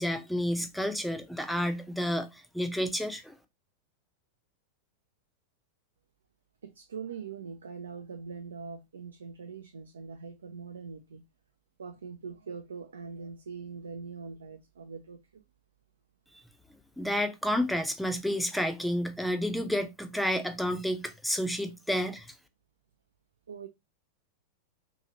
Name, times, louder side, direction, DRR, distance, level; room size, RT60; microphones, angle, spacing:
voice 1, 0.0-3.3 17.0-22.3, equal, ahead, 0.5 m, -30 dB
voice 2, 6.6-11.2 11.8-15.4 23.5-23.7, right 5 dB, 70° right, 0.3 m, -42 dB
2.8 x 2.7 x 2.6 m
figure-of-eight pair, 90°, 0 cm